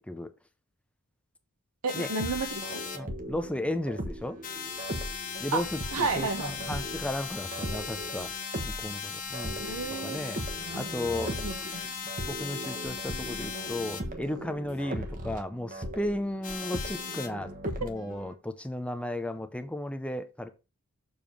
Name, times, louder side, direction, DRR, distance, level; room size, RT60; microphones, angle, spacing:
voice 1, 1.8-2.8 5.5-5.6 5.9-6.5 9.6-10.2 10.7-10.8 11.4-11.8, right 4 dB, 80° right, 1.2 m, -31 dB
sound 1, 1.9-3.0 4.4-14.0 16.4-17.3, left 6 dB, 40° left, 1.3 m, -38 dB
sound 2, 2.2-18.3, right 1 dB, 40° right, 1.2 m, -39 dB
voice 2, 2.9-4.4 5.4-8.3 8.6-9.7 10.0-10.4 10.7-11.3 12.3-17.5 17.8-20.5, left 1 dB, 5° left, 0.6 m, -34 dB
6.9 x 3.6 x 6.1 m
head